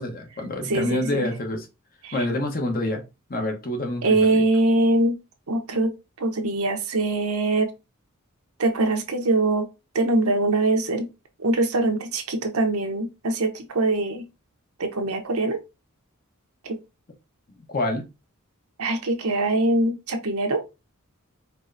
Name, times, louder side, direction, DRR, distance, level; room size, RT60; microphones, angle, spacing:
voice 1, 0.0-1.7 2.1-3.0 3.3-4.4 17.7-18.0, left 1 dB, 45° left, 1.0 m, -27 dB
voice 2, 0.7-1.3 2.0-2.1 4.0-5.2 5.5-7.7 8.6-9.7 9.9-11.1 11.4-14.2 14.8-15.6 16.6-16.8 18.8-20.6, right 2 dB, 90° right, 0.9 m, -23 dB
4.6 x 3.1 x 2.6 m
head